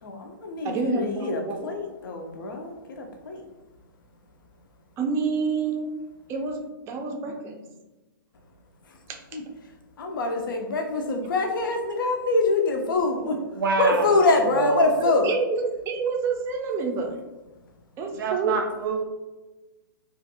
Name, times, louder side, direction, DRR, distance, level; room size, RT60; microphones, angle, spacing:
voice 1, 0.0-3.4 8.8-9.0 9.3-9.4 10.0-15.3, left 2 dB, 70° left, 3 dB, 0.5 m, -25 dB
voice 2, 0.6-1.7 5.0-5.9 6.3-7.7 9.1-9.2 15.0-17.3 18.0-18.6, right 4 dB, 25° right, 2 dB, 0.4 m, -28 dB
voice 3, 13.6-14.1 14.5-14.9 18.2-19.0, right 3 dB, 80° right, 4 dB, 0.5 m, -26 dB
2.5 x 2.5 x 2.7 m, 1.1 s
hypercardioid pair, 130°, 11 cm